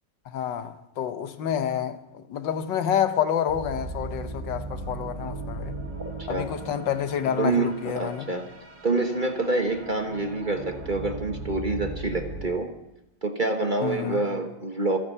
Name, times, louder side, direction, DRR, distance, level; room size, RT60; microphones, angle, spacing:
voice 1, 0.3-5.8 6.3-8.3 13.8-14.2, left 9 dB, 75° left, 1.6 m, -28 dB
sound 1, 3.5-12.5, right 2 dB, 60° right, 2.3 m, -37 dB
voice 2, 7.3-8.5 8.8-12.7 13.2-15.0, right 2 dB, 30° right, 1.2 m, -27 dB
26.5 x 9.1 x 5.6 m
omnidirectional pair, 2.0 m